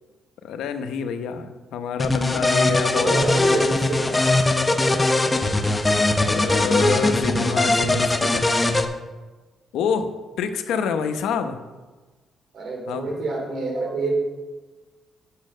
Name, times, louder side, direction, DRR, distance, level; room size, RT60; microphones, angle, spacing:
voice 1, 0.4-3.2 6.2-8.5 9.7-10.1 10.4-11.6 12.9-13.1, left 6 dB, 80° left, 8 dB, 0.9 m, -27 dB
sound 1, 2.0-8.8, left 2 dB, 15° left, 0.8 m, -20 dB
voice 2, 2.8-4.5 4.8-5.1 6.2-6.6 7.1-8.1 12.5-14.3, right 2 dB, 60° right, 0 dB, 3.2 m, -28 dB
8.7 x 6.5 x 6.4 m, 1.3 s
cardioid pair, 90°, 0 cm